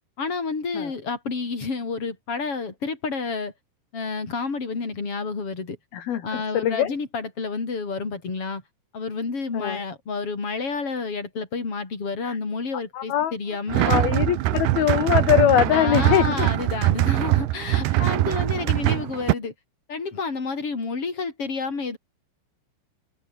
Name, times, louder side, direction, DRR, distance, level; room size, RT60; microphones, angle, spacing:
voice 1, 0.2-3.5 3.9-5.8 6.2-8.6 8.9-14.1 15.7-19.5 19.9-22.0, left 4 dB, 30° left, 5.7 m, -30 dB
voice 2, 5.9-6.9 9.5-9.8 12.2-12.4 12.9-13.3 13.9-16.5 17.9-18.1, left 11 dB, 55° left, 3.5 m, -22 dB
sound 1, 13.7-19.3, right 16 dB, 80° right, 2.3 m, -22 dB
omnidirectional pair, 5.8 m